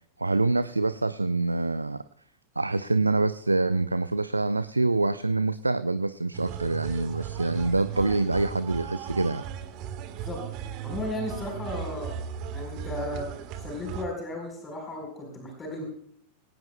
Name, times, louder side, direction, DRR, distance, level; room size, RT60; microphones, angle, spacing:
voice 1, 0.2-2.0 2.6-9.4, right 2 dB, 80° right, 15 dB, 0.4 m, -26 dB
sound 1, 6.3-14.1, right 8 dB, 40° right, 1.5 m, -36 dB
voice 2, 10.8-12.2 12.5-13.3 13.6-15.8, left 1 dB, 20° left, 1 dB, 4.6 m, -35 dB
22.0 x 18.0 x 2.3 m, 0.64 s
figure-of-eight pair, 90°, 0 cm